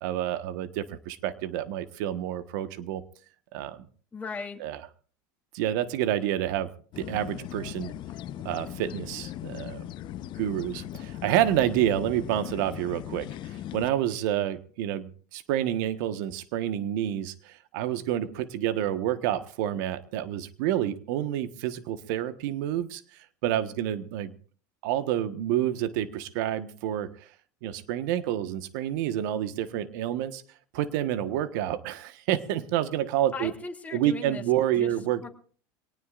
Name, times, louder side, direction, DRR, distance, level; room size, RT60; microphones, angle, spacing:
voice 1, 0.0-3.0 3.5-3.8 4.6-4.8 5.5-6.7 7.0-7.9 8.4-9.9 10.4-23.0 23.4-24.3 24.8-27.1 27.6-30.4 30.7-33.5 33.9-35.3, right 11 dB, 70° right, 11 dB, 1.4 m, -28 dB
voice 2, 4.1-4.6 33.3-34.4 34.7-34.9 35.2-35.3, left 4 dB, 15° left, 1 dB, 3.1 m, -37 dB
sound 1, 6.9-13.9, left 12 dB, 50° left, 1.0 m, -39 dB
24.0 x 18.5 x 2.5 m, 0.43 s
hypercardioid pair, 100°, 11 cm